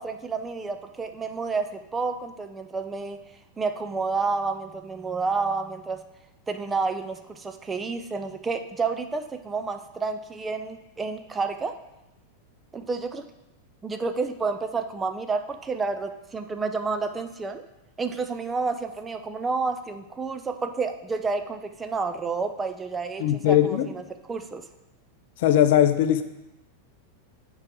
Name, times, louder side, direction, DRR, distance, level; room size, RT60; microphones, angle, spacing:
voice 1, 0.0-3.2 3.6-6.0 6.5-11.7 12.7-13.3 13.8-17.6 18.0-24.0 24.3-24.6, right 4 dB, 15° right, 7 dB, 0.5 m, -30 dB
voice 2, 23.2-23.9 25.4-26.2, left 11 dB, 50° left, 10 dB, 0.5 m, -20 dB
8.6 x 4.7 x 4.6 m, 0.93 s
figure-of-eight pair, 90°, 0 cm